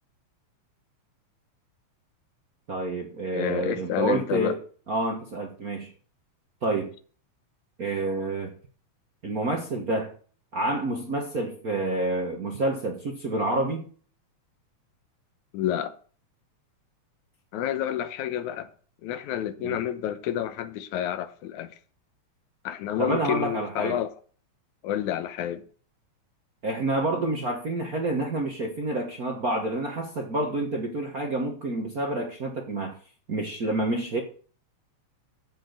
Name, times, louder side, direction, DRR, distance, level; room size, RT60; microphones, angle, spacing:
voice 1, 2.7-4.6 4.9-5.9 6.6-6.9 7.8-8.5 9.2-10.1 10.5-13.9 19.6-19.8 23.0-24.0 26.6-32.9 33.3-34.2, right 2 dB, 45° right, 1.2 m, -28 dB
voice 2, 3.3-4.6 15.5-16.0 17.5-18.7 19.0-21.7 22.6-24.1 24.8-25.6, left 10 dB, 80° left, 2.3 m, -29 dB
7.7 x 7.5 x 8.0 m
omnidirectional pair, 3.4 m